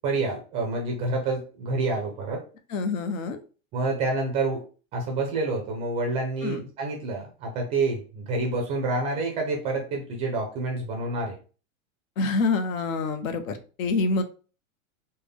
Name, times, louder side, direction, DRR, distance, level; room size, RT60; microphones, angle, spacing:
voice 1, 0.0-2.4 3.7-4.6 4.9-11.4, right 3 dB, 15° right, 2 dB, 0.3 m, -28 dB
voice 2, 2.7-3.4 6.4-6.6 12.2-14.2, left 3 dB, 80° left, 8 dB, 0.8 m, -26 dB
3.4 x 2.2 x 3.4 m, 0.36 s
supercardioid pair, 150°, 39 cm